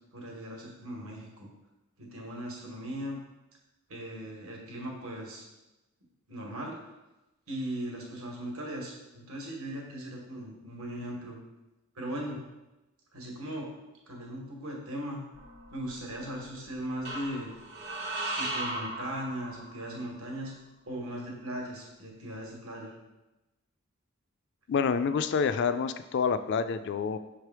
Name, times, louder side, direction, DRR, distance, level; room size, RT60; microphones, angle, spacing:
voice 1, 0.1-1.5 2.0-3.2 3.9-5.5 6.3-6.7 7.5-11.4 11.9-12.4 13.1-13.7 14.1-15.2 15.7-17.5 18.3-20.5 20.9-23.0, right 1 dB, 75° right, -1 dB, 1.3 m, -38 dB
sound 1, 15.3-16.2 17.0-19.9, right 1 dB, 50° right, 1.2 m, -37 dB
voice 2, 24.7-27.2, left 6 dB, 55° left, 11 dB, 0.3 m, -27 dB
6.1 x 3.3 x 4.6 m, 1.0 s
head